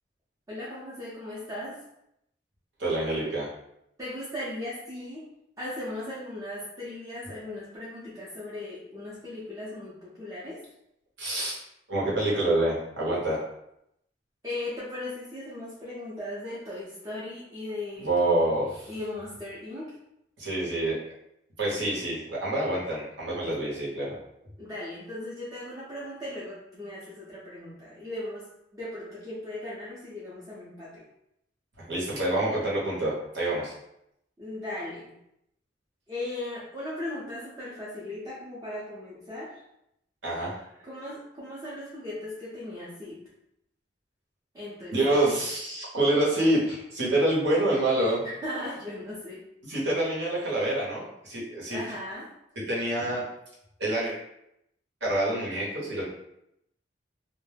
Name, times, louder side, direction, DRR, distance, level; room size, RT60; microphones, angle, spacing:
voice 1, 0.5-1.8 4.0-5.2 5.6-10.6 14.4-18.4 18.9-19.9 24.6-28.5 28.7-31.0 34.4-35.1 36.1-39.6 40.8-43.2 44.5-45.4 48.2-49.4 51.7-52.3, left 1 dB, 15° right, -9 dB, 0.5 m, -37 dB
voice 2, 2.8-3.5 11.2-11.6 11.9-13.4 18.0-18.9 20.4-21.0 21.6-24.1 31.8-33.7 40.2-40.6 44.9-48.2 49.7-51.8 52.7-53.2 53.8-54.1 55.0-56.0, right 1 dB, 70° right, -5 dB, 0.9 m, -27 dB
2.2 x 2.0 x 3.2 m, 0.80 s
head